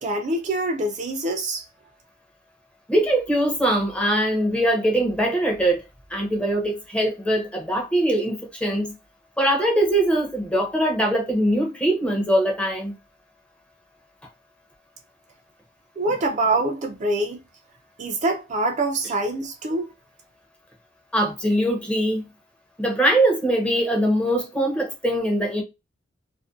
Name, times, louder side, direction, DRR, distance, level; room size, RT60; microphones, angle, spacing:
voice 1, 0.0-1.7 16.0-17.4 18.0-19.9, right 2 dB, 40° right, 0.3 m, -25 dB
voice 2, 2.9-5.8 6.1-8.9 9.4-13.0 21.1-22.2 22.8-25.6, right 1 dB, 5° left, 0.6 m, -22 dB
2.5 x 2.1 x 2.4 m
head